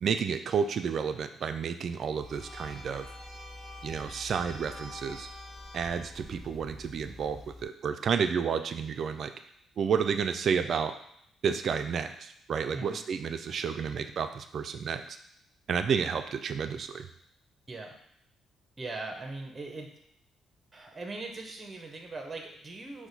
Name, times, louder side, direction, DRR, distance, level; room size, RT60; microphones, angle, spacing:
voice 1, 0.0-3.1 3.8-5.3 5.7-9.3 9.8-11.0 11.4-15.2 15.7-17.1, right 6 dB, 60° right, 9 dB, 0.3 m, -31 dB
sound 1, 2.2-7.6, left 1 dB, 10° left, 1.7 m, -45 dB
voice 2, 18.8-19.9 20.7-23.1, right 3 dB, 25° right, 2 dB, 0.7 m, -40 dB
4.6 x 2.1 x 4.0 m, 0.69 s
cardioid pair, 90°, 0 cm